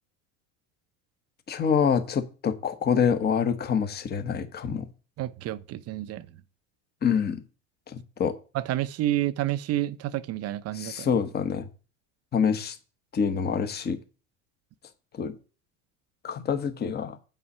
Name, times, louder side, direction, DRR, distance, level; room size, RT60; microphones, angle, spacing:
voice 1, 1.5-4.9 7.0-7.4 7.9-8.4 10.7-11.7 12.3-12.8 13.1-14.0 15.1-15.3 16.2-17.2, left 7 dB, 25° left, 1.1 m, -26 dB
voice 2, 5.2-6.3 8.5-11.1, right 14 dB, 40° right, 0.6 m, -29 dB
8.3 x 5.6 x 5.5 m
supercardioid pair, 120°, 38 cm